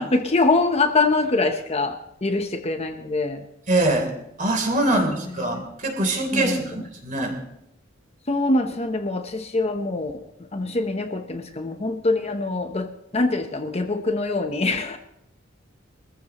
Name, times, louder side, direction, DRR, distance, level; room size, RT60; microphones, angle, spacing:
voice 1, 0.0-2.0 2.2-3.5 4.9-5.1 5.4-5.6 6.3-6.6 8.3-10.2 10.5-15.0, left 3 dB, 30° left, 6 dB, 0.9 m, -24 dB
voice 2, 3.7-4.1 4.4-7.3, right 2 dB, 40° right, 2 dB, 3.4 m, -23 dB
22.5 x 14.5 x 3.0 m, 0.78 s
head